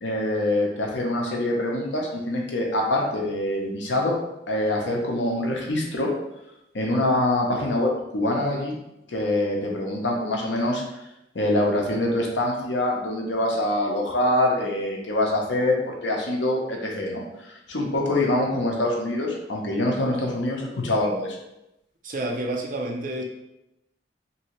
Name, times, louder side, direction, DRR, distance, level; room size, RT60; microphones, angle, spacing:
voice 1, 0.0-4.2 4.5-6.1 6.7-8.8 9.1-10.8 11.3-21.4, left 1 dB, 90° left, 0 dB, 0.7 m, -25 dB
voice 2, 22.0-23.2, right 1 dB, 50° right, 1 dB, 0.5 m, -29 dB
2.9 x 2.7 x 2.9 m, 0.89 s
head